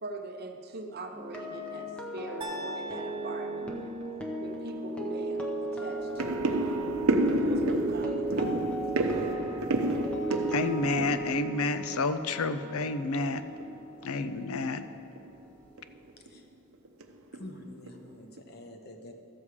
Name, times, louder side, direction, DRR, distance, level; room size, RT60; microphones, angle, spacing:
voice 1, 0.0-4.0 4.4-7.0 7.4-8.8, right 2 dB, 45° right, 4 dB, 0.7 m, -42 dB
sound 1, 1.1-15.2 15.4-15.7, right 2 dB, 5° left, 0.7 m, -36 dB
sound 2, 2.4-4.5, right 1 dB, 20° right, 1.0 m, -42 dB
sound 3, 4.7-4.8 5.2-5.3 5.7-12.3 12.5-13.1 13.5-13.7 14.0-14.1 14.6-14.8 15.1-15.3 15.8-16.3 16.8-17.0 17.3-18.0 18.4-18.5, right 2 dB, 90° right, 0.7 m, -30 dB
voice 2, 10.5-13.4 14.0-14.8, left 3 dB, 90° left, 11 dB, 0.5 m, -29 dB
voice 3, 17.3-19.1, left 1 dB, 50° left, 4 dB, 1.0 m, -46 dB
13.5 x 7.1 x 4.9 m, 2.5 s
head